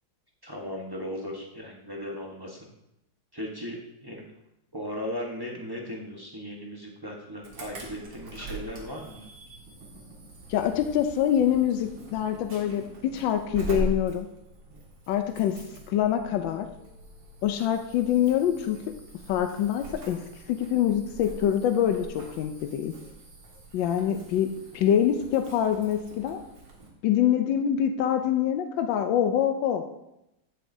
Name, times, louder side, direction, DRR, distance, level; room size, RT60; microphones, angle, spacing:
voice 1, 0.4-2.6 3.3-4.2 4.7-9.3, equal, 15° right, -2 dB, 0.9 m, -37 dB
Insect / Alarm, 7.4-26.9, right 1 dB, 75° right, 2.6 m, -42 dB
voice 2, 10.5-14.3 15.1-16.7 17.4-18.8 19.3-20.2 20.5-22.9 23.7-24.5 24.7-26.4 27.0-29.8, left 10 dB, 80° left, 7 dB, 1.4 m, -25 dB
15.0 x 7.6 x 2.7 m, 0.87 s
omnidirectional pair, 2.0 m